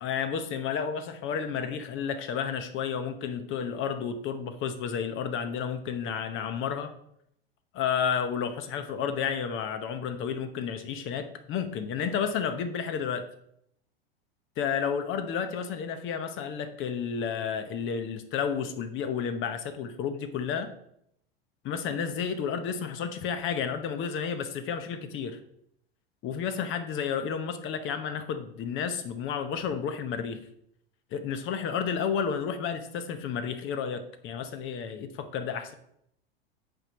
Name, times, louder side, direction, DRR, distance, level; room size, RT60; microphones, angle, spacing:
voice 1, 0.0-6.9 7.7-13.3 14.6-20.7 21.6-25.4 26.2-30.4 31.1-35.7, left 7 dB, 40° left, 9 dB, 0.9 m, -31 dB
7.9 x 4.4 x 5.2 m, 0.73 s
hypercardioid pair, 95°, 30 cm